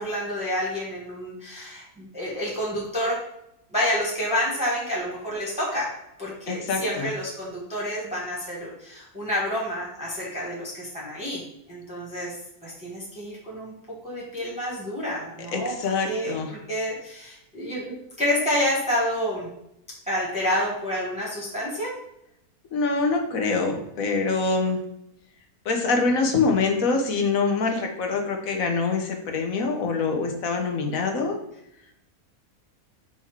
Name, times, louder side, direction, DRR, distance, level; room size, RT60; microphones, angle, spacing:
voice 1, 0.0-3.2 3.7-5.9 6.2-11.4 11.7-12.3 12.6-13.7 14.0-15.7 16.1-19.5 20.1-21.9, equal, 5° right, -6 dB, 1.4 m, -29 dB
voice 2, 6.5-7.1 15.5-16.5 22.7-24.8 25.6-31.4, left 4 dB, 70° left, 3 dB, 1.3 m, -25 dB
5.8 x 3.9 x 4.7 m, 0.80 s
omnidirectional pair, 1.5 m